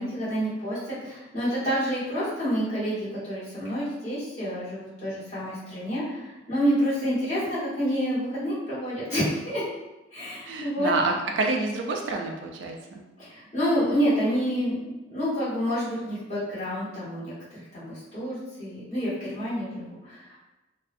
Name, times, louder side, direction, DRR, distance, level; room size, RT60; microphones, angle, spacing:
voice 1, 0.0-9.7 10.1-10.9 13.2-20.4, equal, 35° left, -10 dB, 1.2 m, -28 dB
voice 2, 10.5-13.0, right 3 dB, 65° right, 2 dB, 0.3 m, -28 dB
2.5 x 2.0 x 2.4 m, 1.0 s
head